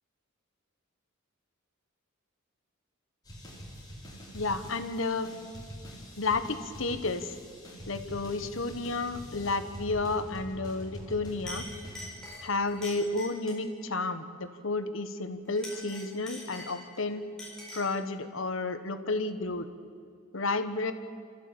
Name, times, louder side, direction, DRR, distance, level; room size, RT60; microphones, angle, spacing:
sound 1, 3.3-12.1, equal, 20° left, 4.5 m, -45 dB
voice 1, 4.3-5.3 6.2-7.3 7.9-11.7 12.4-17.2 17.7-19.7 20.3-20.9, left 3 dB, 65° left, 10 dB, 1.3 m, -31 dB
Chink clink, 11.0-11.1 11.5-13.7 15.4-17.0 17.4-18.0, left 1 dB, 5° left, 4.5 m, -44 dB
27.5 x 14.0 x 8.6 m, 2.3 s
head